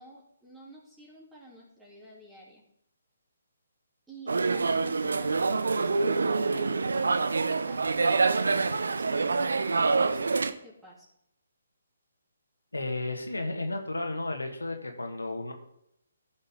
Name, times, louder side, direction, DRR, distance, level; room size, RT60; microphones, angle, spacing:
voice 1, 0.0-2.6 4.1-11.1, right 1 dB, 5° right, -5 dB, 3.2 m, -50 dB
sound 1, 4.3-10.5, right 4 dB, 75° right, 0.7 m, -26 dB
voice 2, 12.7-15.5, left 2 dB, 90° left, 4 dB, 1.9 m, -33 dB
15.0 x 6.5 x 3.8 m, 0.77 s
figure-of-eight pair, 140°, 0 cm